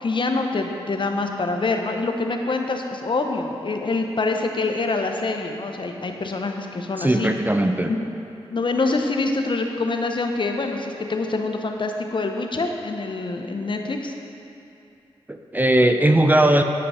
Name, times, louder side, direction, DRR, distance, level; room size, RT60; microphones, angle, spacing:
voice 1, 0.0-7.3 7.8-8.0 8.5-14.1, left 3 dB, 50° left, 4 dB, 0.8 m, -25 dB
voice 2, 7.0-7.9 15.3-16.6, right 1 dB, 15° right, 6 dB, 0.5 m, -18 dB
9.9 x 5.8 x 4.9 m, 2.7 s
cardioid pair, 45°, 10 cm